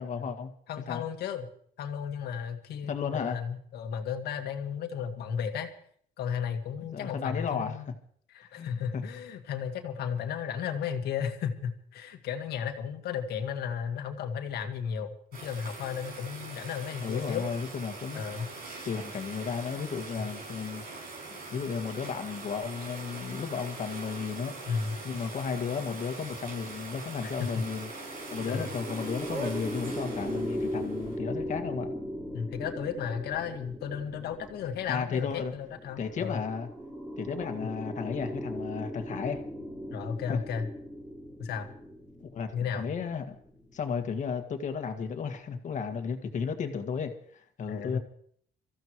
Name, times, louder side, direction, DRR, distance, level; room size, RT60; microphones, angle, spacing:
voice 1, 0.0-0.5 0.9-1.0 2.8-3.4 6.8-7.8 8.5-9.0 17.0-18.2 18.8-20.8 21.5-24.5 25.0-27.9 28.3-31.9 34.9-35.5 36.0-36.7 37.2-39.4 40.3-40.4 42.3-42.5 42.7-43.4 43.7-48.0, left 6 dB, 45° left, 7 dB, 1.8 m, -34 dB
voice 2, 0.7-1.5 1.8-5.7 6.2-7.9 8.3-15.1 15.4-17.5 18.1-18.5 20.2-20.3 24.7-25.0 27.2-27.6 28.5-28.7 30.6-30.8 32.3-36.4 39.9-40.7 41.4-41.7 42.5-42.9 47.7-48.0, left 7 dB, 70° left, 6 dB, 1.8 m, -34 dB
sound 1, 15.3-31.2, right 3 dB, 65° right, 6.5 m, -42 dB
sound 2, 27.7-44.8, equal, 5° right, 3.0 m, -39 dB
25.0 x 14.5 x 3.1 m, 0.62 s
cardioid pair, 110°, 17 cm